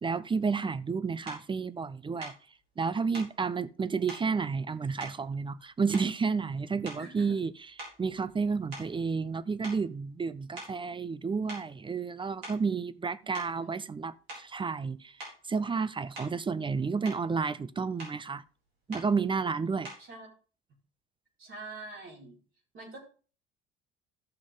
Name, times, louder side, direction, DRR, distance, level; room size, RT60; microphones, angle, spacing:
voice 1, 0.0-2.3 2.8-7.5 8.0-15.1 15.5-18.4 18.9-19.9, right 5 dB, 15° right, 0.5 m, -31 dB
sound 1, 1.3-1.5 2.2-2.4 3.1-3.4 4.1-4.3 5.0-5.6 5.9-6.3 6.8-7.2 7.8-9.3 9.6-9.9 10.6-10.8 11.5-11.7 12.2-12.7 13.3-13.6 14.3-14.5 15.2-15.4 16.1-16.4 16.8-17.3 18.0-18.2 18.9-19.1 19.8-20.1, right 1 dB, 80° right, 4.5 m, -45 dB
voice 2, 7.0-7.3 13.2-13.7 20.0-20.3 21.4-22.4 22.7-23.0, right 2 dB, 40° right, 4.5 m, -45 dB
14.0 x 6.1 x 3.7 m
figure-of-eight pair, 60°, 30 cm